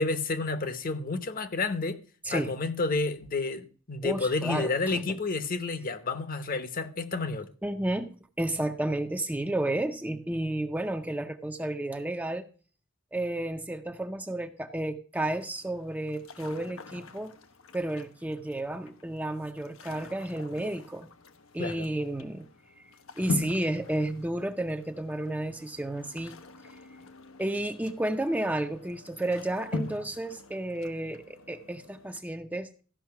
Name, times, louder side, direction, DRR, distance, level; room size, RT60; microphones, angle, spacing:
voice 1, 0.0-2.0 2.3-7.5 21.6-21.9, left 3 dB, 45° left, 0.9 m, -30 dB
voice 2, 4.0-5.0 7.6-12.5 13.1-17.3 17.7-21.1 21.5-22.5 23.2-26.3 27.4-32.7, right 1 dB, 10° right, 0.6 m, -32 dB
sound 1, 15.4-32.2, left 3 dB, 85° left, 1.0 m, -42 dB
14.0 x 5.7 x 5.8 m
head